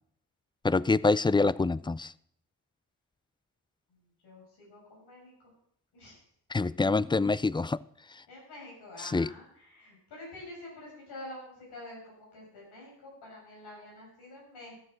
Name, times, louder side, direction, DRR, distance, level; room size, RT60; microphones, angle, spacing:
voice 1, 0.6-2.1 6.5-7.8 8.1-8.2 9.0-9.3, left 3 dB, 15° left, 19 dB, 0.4 m, -26 dB
voice 2, 4.2-5.3 5.9-6.2 8.3-14.7, left 1 dB, 90° left, -3 dB, 6.6 m, -47 dB
13.0 x 7.3 x 6.5 m, 0.71 s
cardioid pair, 50°, 38 cm